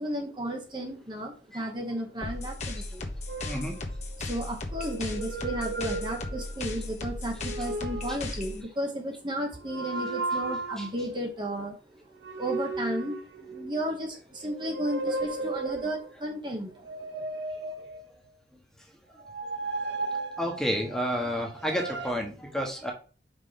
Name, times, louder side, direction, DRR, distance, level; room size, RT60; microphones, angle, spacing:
voice 1, 0.0-3.0 4.2-11.8 12.3-16.7, right 1 dB, 25° right, 1 dB, 1.2 m, -33 dB
sound 1, 2.2-8.6, left 2 dB, 35° left, 1.3 m, -36 dB
sound 2, 3.3-4.2 4.7-6.7 7.3-8.3 9.6-11.0 12.2-13.9 14.4-16.1 16.7-18.3 19.2-21.0 21.5-22.1, right 3 dB, 75° right, 1.1 m, -35 dB
voice 2, 3.4-3.8 10.8-10.9 20.4-22.9, equal, 5° left, 1 dB, 1.4 m, -30 dB
5.4 x 5.3 x 5.8 m, 0.37 s
head